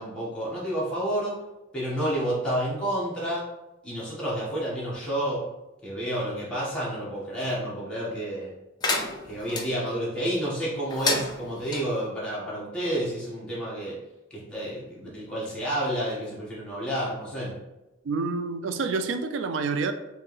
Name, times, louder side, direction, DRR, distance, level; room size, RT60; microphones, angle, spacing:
voice 1, 0.0-1.4 1.7-3.5 3.8-5.5 5.8-8.5 9.2-14.0 14.3-17.6, right 1 dB, 5° left, -8 dB, 1.4 m, -30 dB
sound 1, 8.8-9.7 10.9-11.8, left 3 dB, 20° left, 0.4 m, -29 dB
voice 2, 18.0-19.9, right 4 dB, 85° right, 8 dB, 0.3 m, -28 dB
4.4 x 3.1 x 3.2 m, 1.0 s
head